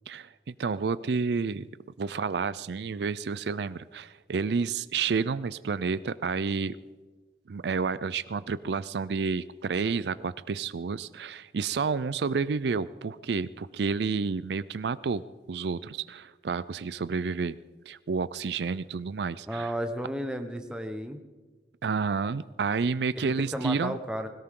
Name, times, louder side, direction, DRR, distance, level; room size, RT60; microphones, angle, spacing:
voice 1, 0.1-1.7 2.0-6.8 7.5-15.2 15.5-17.6 17.9-19.7 21.8-24.0, right 5 dB, 70° right, 16 dB, 0.4 m, -30 dB
voice 2, 19.5-21.2 23.2-24.3, equal, 5° right, 5 dB, 1.1 m, -33 dB
20.5 x 18.0 x 3.8 m, 1.3 s
head